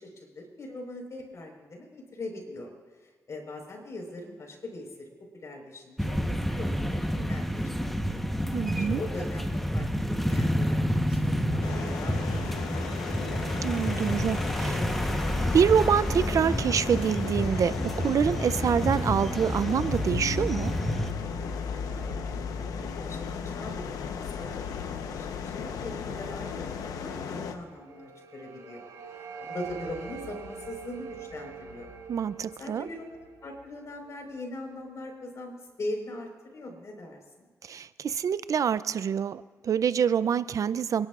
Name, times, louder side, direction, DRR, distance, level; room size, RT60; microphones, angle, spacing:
voice 1, 0.0-2.7 3.0-8.6 8.9-13.3 21.8-22.3 22.6-31.9 32.6-37.5, left 2 dB, 55° left, 1 dB, 4.6 m, -41 dB
sound 1, 6.0-21.1, equal, 5° left, 1.1 m, -29 dB
voice 2, 8.5-9.0 13.6-14.8 15.5-20.7 32.1-32.9 37.6-41.1, right 7 dB, 65° right, 15 dB, 0.5 m, -26 dB
sound 2, 11.6-27.5, left 6 dB, 85° left, 0.9 m, -36 dB
sound 3, 27.4-34.4, right 5 dB, 90° right, 4.2 m, -44 dB
29.5 x 11.5 x 2.5 m, 1.4 s
cardioid pair, 60°, 6 cm